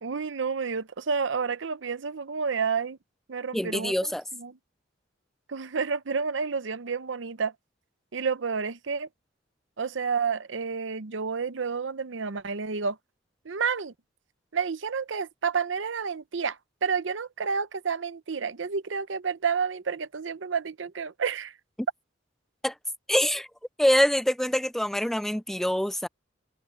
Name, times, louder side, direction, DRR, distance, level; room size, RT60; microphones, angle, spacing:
voice 1, 0.0-3.0 3.3-4.6 5.5-7.5 8.1-9.1 9.8-13.0 13.4-13.9 14.5-21.5, right 5 dB, 70° right, 0.7 m, -30 dB
voice 2, 3.5-4.2 22.6-22.7 23.1-23.5 23.8-26.1, equal, ahead, 0.3 m, -25 dB
head